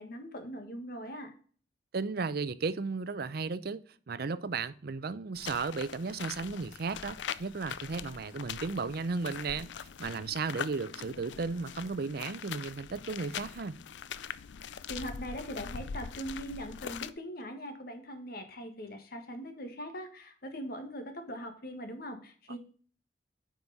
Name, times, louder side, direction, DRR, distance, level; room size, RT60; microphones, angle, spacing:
voice 1, 0.0-1.3 14.9-22.6, equal, 60° left, 1.6 m, -41 dB
voice 2, 1.9-9.7 10.0-13.8, right 4 dB, 60° right, 0.6 m, -35 dB
sound 1, 5.3-17.1, left 7 dB, 90° left, 0.5 m, -42 dB
9.4 x 5.1 x 4.0 m
head